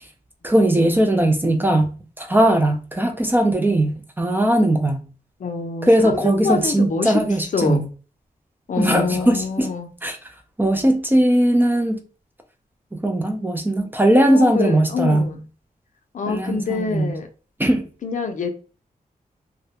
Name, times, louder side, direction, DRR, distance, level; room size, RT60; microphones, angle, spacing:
voice 1, 0.4-5.0 5.8-7.8 8.8-9.7 10.0-10.2 10.6-12.0 12.9-15.3 16.3-17.1 17.6-17.9, right 1 dB, 15° right, 0.4 m, -19 dB
voice 2, 5.4-7.2 7.5-7.8 8.7-9.9 14.3-15.4 16.1-17.3 18.0-18.5, left 5 dB, 60° left, 0.5 m, -25 dB
2.3 x 2.1 x 2.8 m
wide cardioid pair, 115°, 15 cm